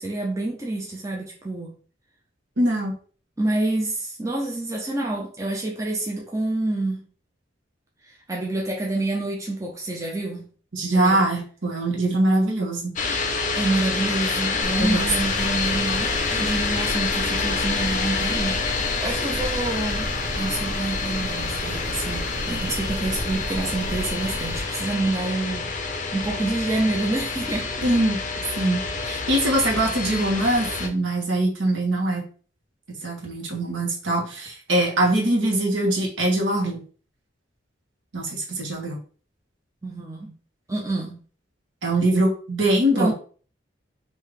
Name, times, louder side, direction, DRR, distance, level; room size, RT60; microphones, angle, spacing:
voice 1, 0.0-1.8 3.4-7.0 8.3-10.4 10.8-11.2 13.5-20.1 20.4-27.9 39.8-40.3 40.7-41.2 42.9-43.1, right 2 dB, 15° right, 0.6 m, -27 dB
voice 2, 2.6-2.9 10.7-13.0 14.8-15.1 27.8-28.2 28.6-32.3 33.0-36.8 38.1-39.0 41.8-43.1, right 1 dB, 75° right, 1.2 m, -22 dB
sound 1, 13.0-30.9, left 4 dB, 40° left, 0.5 m, -27 dB
sound 2, 14.6-24.6, equal, 45° right, 1.1 m, -33 dB
3.7 x 2.6 x 3.3 m
head